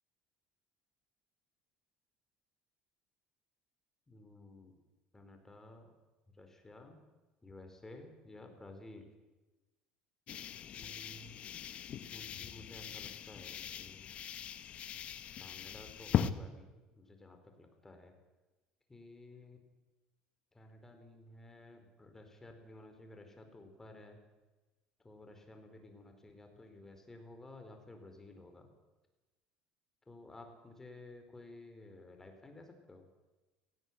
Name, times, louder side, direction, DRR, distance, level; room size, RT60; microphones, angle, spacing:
voice 1, 4.1-4.8 5.1-5.9 6.3-7.0 7.4-9.1 10.7-11.4 12.1-14.1 15.4-18.2 18.9-19.6 20.5-24.2 25.0-28.7 30.1-33.1, left 2 dB, 15° left, 5 dB, 4.7 m, -54 dB
sound 1, 10.3-16.3, left 9 dB, 45° left, 1.2 m, -39 dB
18.0 x 16.0 x 9.5 m, 1.2 s
supercardioid pair, 110°, 3 cm